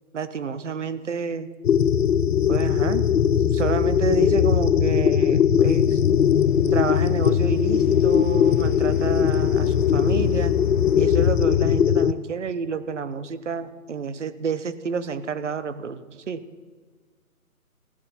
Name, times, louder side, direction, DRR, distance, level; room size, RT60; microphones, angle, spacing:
voice 1, 0.1-1.5 2.5-3.0 3.4-6.0 6.7-10.5 11.0-16.4, right 6 dB, 55° right, 13 dB, 0.8 m, -29 dB
sound 1, 1.6-12.1, left 8 dB, 80° left, 0.6 m, -20 dB
sound 2, 5.7-13.3, left 3 dB, 35° left, 0.9 m, -40 dB
16.0 x 7.3 x 5.7 m, 1.5 s
hypercardioid pair, 170°, 44 cm